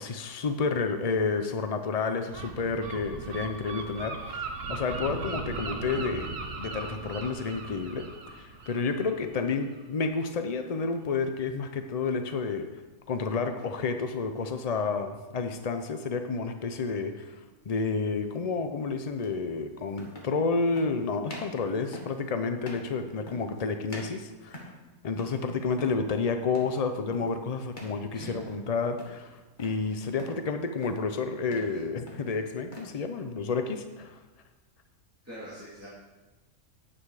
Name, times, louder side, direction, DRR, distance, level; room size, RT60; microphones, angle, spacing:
voice 1, 0.0-6.3 6.6-8.0 8.3-12.7 13.1-24.7 25.0-34.2, left 4 dB, 60° left, 7 dB, 0.4 m, -30 dB
Gull seagull, 2.3-9.8, right 3 dB, 60° right, 1.5 m, -38 dB
voice 2, 16.8-17.1 28.1-28.4 29.9-30.1 31.7-31.8 35.2-35.9, equal, 10° right, -9 dB, 2.6 m, -45 dB
sound 1, 17.7-17.9 19.2-19.3 19.9-20.4 20.7-21.0 21.3-21.6 21.9-22.2 22.6-22.9 23.3-23.6 23.9-24.9 25.2-25.5 25.7-26.0 26.5-26.8 27.1-27.4 27.7-28.0 28.3-28.7 29.0-29.8 30.2-30.5 30.8-31.1 31.4-31.8 32.1-32.9, left 1 dB, 35° left, 1.8 m, -45 dB
10.0 x 8.6 x 4.8 m, 1.2 s
omnidirectional pair, 1.5 m